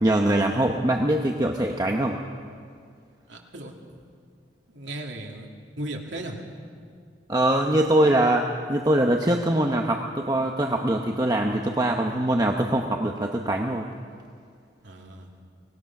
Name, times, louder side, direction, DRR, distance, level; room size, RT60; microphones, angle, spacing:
voice 1, 0.0-2.2 7.3-13.9, right 1 dB, 20° right, 2 dB, 0.9 m, -23 dB
voice 2, 3.3-3.7 4.7-5.5 5.8-6.4 14.8-15.3, right 1 dB, 85° right, 1 dB, 2.6 m, -36 dB
23.5 x 19.5 x 6.1 m, 2.1 s
head